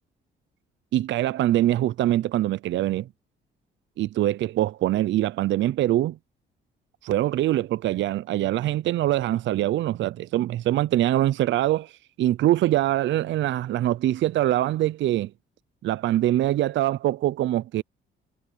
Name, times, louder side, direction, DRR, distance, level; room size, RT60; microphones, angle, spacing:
voice 1, 0.9-3.1 4.0-6.2 7.0-11.9 12.2-15.3 15.8-17.8, right 14 dB, 70° right, 0.5 m, -23 dB
cardioid pair, 90°, 20 cm